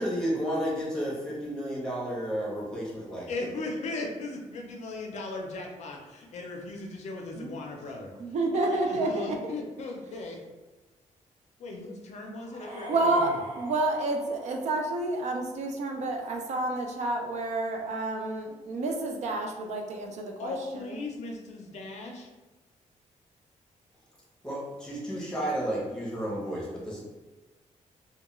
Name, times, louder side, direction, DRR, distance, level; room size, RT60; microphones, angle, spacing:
voice 1, 0.0-3.3 24.4-27.0, equal, 5° left, -6 dB, 0.7 m, -32 dB
voice 2, 3.3-8.1 8.5-10.4 11.6-13.3 20.4-22.3, left 2 dB, 60° left, 1 dB, 0.4 m, -37 dB
voice 3, 8.2-9.4 12.9-21.0, right 2 dB, 60° right, 2 dB, 0.4 m, -29 dB
sound 1, 12.4-15.4, right 1 dB, 85° right, 1.0 m, -42 dB
2.2 x 2.2 x 2.9 m, 1.2 s
wide cardioid pair, 170°, 13 cm